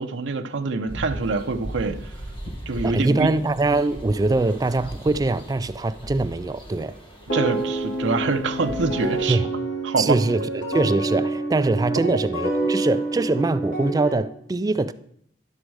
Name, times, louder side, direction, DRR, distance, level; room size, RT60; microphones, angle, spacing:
voice 1, 0.0-2.0 2.7-3.3 7.3-9.4 9.8-10.2 12.6-12.7, right 3 dB, 80° right, 0.6 m, -25 dB
sound 1, 0.9-9.4, right 1 dB, 30° left, 1.4 m, -38 dB
voice 2, 2.8-7.0 9.2-9.5 10.0-14.9, right 2 dB, 20° right, 0.3 m, -23 dB
sound 2, 7.3-14.1, right 2 dB, 70° left, 3.0 m, -27 dB
11.5 x 6.3 x 4.7 m
head